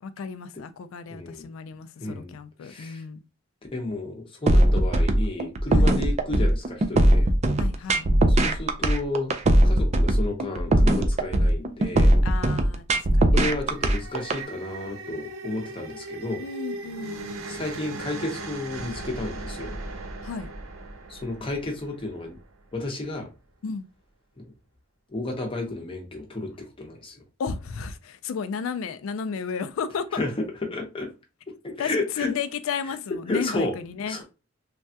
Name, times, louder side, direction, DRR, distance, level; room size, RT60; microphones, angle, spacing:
voice 1, 0.0-3.2 5.7-6.0 7.6-8.1 12.2-13.5 16.4-17.3 20.2-20.5 23.6-23.9 27.4-30.2 31.8-34.2, left 6 dB, 75° left, 0.3 m, -33 dB
voice 2, 1.1-1.5 2.0-2.4 2.6-3.0 3.7-7.3 8.3-9.3 9.6-12.1 13.3-16.4 17.5-19.8 21.1-22.4 22.7-23.3 24.4-24.5 25.1-27.2 30.1-31.1 31.6-32.3 33.3-33.7 34.1-34.2, left 2 dB, 25° left, 0.7 m, -32 dB
sound 1, 4.5-14.4, right 1 dB, 35° right, 0.4 m, -19 dB
sound 2, 13.4-22.7, right 2 dB, 85° right, 0.5 m, -38 dB
3.2 x 2.2 x 2.7 m
head